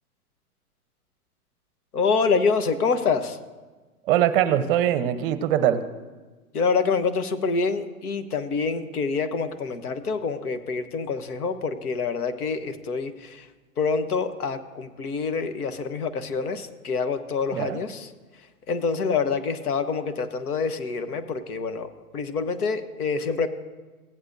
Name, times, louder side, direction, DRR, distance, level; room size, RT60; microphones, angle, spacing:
voice 1, 1.9-3.4 6.5-13.5 13.8-18.1 18.7-23.5, left 5 dB, 80° left, 10 dB, 1.1 m, -26 dB
voice 2, 4.1-5.8 17.5-17.8, right 11 dB, 40° right, 11 dB, 0.7 m, -22 dB
16.5 x 9.6 x 2.6 m, 1.3 s
hypercardioid pair, 120°, 44 cm